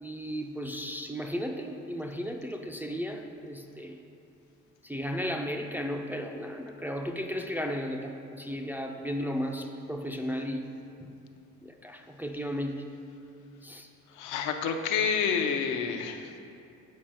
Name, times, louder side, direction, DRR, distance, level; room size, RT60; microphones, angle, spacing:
voice 1, 0.0-4.0 4.8-10.7 11.6-12.8 13.6-13.9, equal, 5° right, 3 dB, 0.3 m, -34 dB
voice 2, 14.1-16.4, left 6 dB, 80° left, 5 dB, 0.6 m, -29 dB
7.5 x 4.5 x 4.3 m, 2.7 s
cardioid pair, 110°, 29 cm